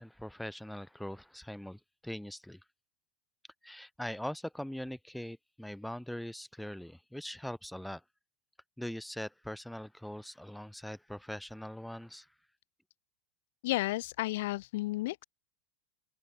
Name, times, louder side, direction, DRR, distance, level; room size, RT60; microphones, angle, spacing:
voice 1, 0.0-2.6 3.6-8.0 8.8-12.3, left 1 dB, ahead, 0.7 m, -42 dB
voice 2, 13.6-15.2, left 18 dB, 65° left, 0.8 m, -32 dB
open air
supercardioid pair, 155°, 0 cm